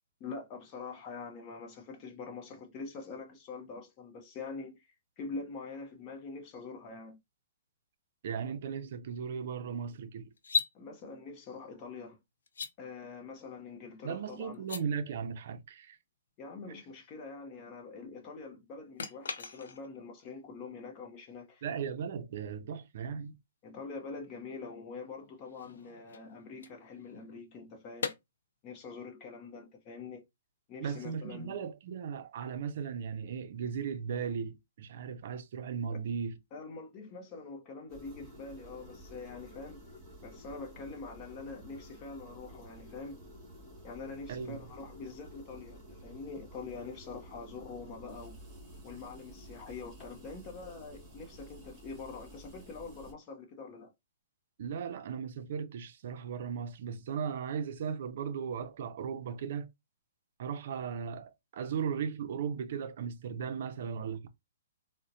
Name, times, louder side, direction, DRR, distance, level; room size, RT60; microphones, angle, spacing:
voice 1, 0.2-7.2 10.7-12.2 12.8-14.6 16.4-21.7 23.6-28.1 28.6-30.2 30.7-31.6 35.9-36.0 36.5-39.8 40.2-43.2 43.8-48.4 48.8-53.9, left 4 dB, 25° left, 0.7 m, -45 dB
voice 2, 8.2-10.3 14.0-16.0 21.6-23.3 30.8-36.4 44.3-44.6 54.6-59.7 60.4-64.3, right 7 dB, 55° right, 0.5 m, -37 dB
sound 1, 10.4-10.7 12.5-12.7 14.5-14.8 19.0-20.0 23.2-23.3 25.2-27.4 28.0-28.2, left 4 dB, 85° left, 0.6 m, -37 dB
sound 2, 37.9-53.1, equal, 20° right, 1.5 m, -52 dB
3.9 x 2.1 x 2.6 m
hypercardioid pair, 155°, 0 cm